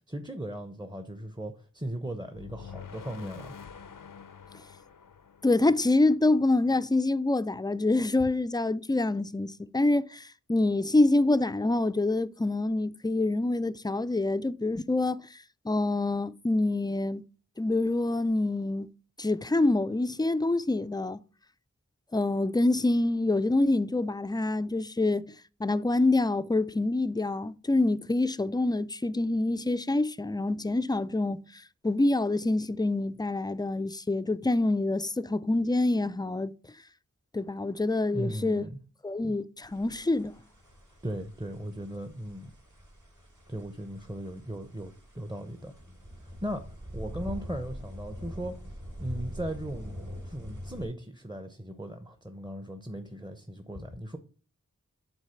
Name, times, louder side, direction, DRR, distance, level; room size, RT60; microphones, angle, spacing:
voice 1, 0.1-3.6 38.1-38.8 41.0-42.5 43.5-45.7 46.2-46.6 46.9-48.6 49.0-49.9 50.2-54.2, right 1 dB, 15° right, 0.7 m, -37 dB
sound 1, 2.3-6.4, left 6 dB, 85° left, 0.6 m, -47 dB
voice 2, 5.4-15.2 15.7-17.2 17.6-18.9 19.2-21.2 22.1-25.3 25.6-31.4 31.8-36.5 37.3-38.7 39.0-40.3, left 2 dB, 15° left, 0.3 m, -26 dB
sound 2, 39.6-50.9, equal, 70° right, 3.1 m, -44 dB
8.0 x 4.0 x 5.7 m
wide cardioid pair, 45°, 32 cm